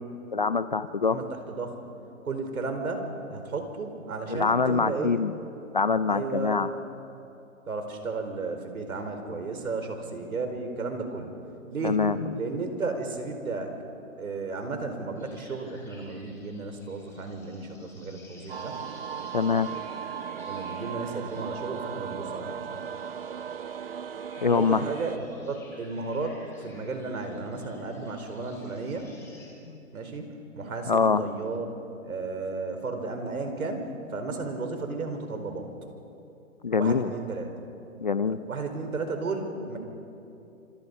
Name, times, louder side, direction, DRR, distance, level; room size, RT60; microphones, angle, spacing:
voice 1, 0.3-1.2 4.3-5.3 5.7-6.7 11.8-12.2 19.3-19.7 24.4-24.8 29.7-29.8 30.9-31.2 36.6-37.1 38.0-38.4, left 5 dB, 35° left, 14 dB, 0.5 m, -24 dB
voice 2, 1.0-1.8 2.2-5.2 6.1-6.7 7.7-11.3 11.7-12.0 12.3-13.7 14.2-18.8 20.4-22.8 24.5-29.1 29.9-31.7 32.1-35.7 36.8-37.5 38.5-39.8, right 3 dB, 80° right, 5 dB, 4.8 m, -33 dB
sound 1, 15.1-29.5, left 2 dB, 5° left, 3.6 m, -55 dB
sound 2, 18.5-25.2, right 8 dB, 45° right, 0.4 m, -37 dB
27.0 x 26.0 x 5.5 m, 2.8 s
hypercardioid pair, 165°, 42 cm